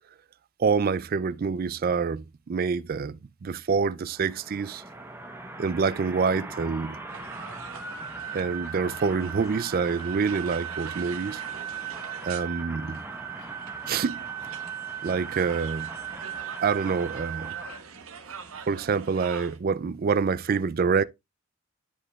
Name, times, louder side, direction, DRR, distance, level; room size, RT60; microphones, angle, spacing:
voice 1, 0.6-4.8 5.6-7.0 8.3-11.4 12.2-13.0 13.9-14.2 15.0-16.0 16.6-17.6 18.7-21.0, right 5 dB, 40° right, 0.3 m, -26 dB
sound 1, 4.1-17.8, right 6 dB, 10° right, 0.8 m, -37 dB
sound 2, 7.1-19.6, right 6 dB, 70° right, 1.2 m, -45 dB
12.5 x 4.9 x 2.3 m
head